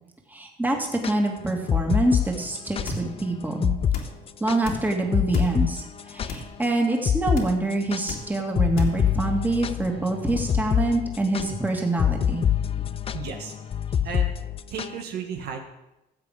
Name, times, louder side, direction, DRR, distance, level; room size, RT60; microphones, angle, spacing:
voice 1, 0.3-3.7 4.4-12.4, right 2 dB, 10° right, 1 dB, 2.1 m, -25 dB
sound 1, 0.9-2.9 3.2-3.3 3.6-4.0 4.3-6.7 7.0-7.4 7.7-15.0, left 9 dB, 35° left, 0.5 m, -25 dB
sound 2, 2.8-3.2 3.8-4.2 4.6-5.6 6.2-6.6 7.3-7.7 8.1-8.4 8.7-9.1 10.2-10.6 11.4-11.7, left 6 dB, 70° left, 2.3 m, -34 dB
voice 2, 13.1-13.8 14.0-14.3 14.7-15.6, right 7 dB, 75° right, 3 dB, 1.6 m, -34 dB
14.5 x 7.8 x 5.0 m, 0.94 s
cardioid pair, 110°, 17 cm